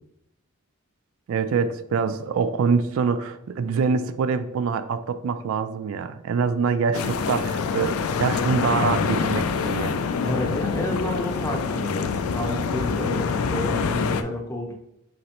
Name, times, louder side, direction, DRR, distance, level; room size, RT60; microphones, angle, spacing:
voice 1, 1.3-10.0, right 5 dB, 70° right, 10 dB, 0.3 m, -25 dB
sound 1, 6.9-14.2, left 5 dB, 85° left, 0.4 m, -26 dB
voice 2, 10.2-14.7, left 1 dB, 15° left, 0 dB, 0.7 m, -30 dB
5.1 x 3.1 x 2.9 m, 0.82 s
head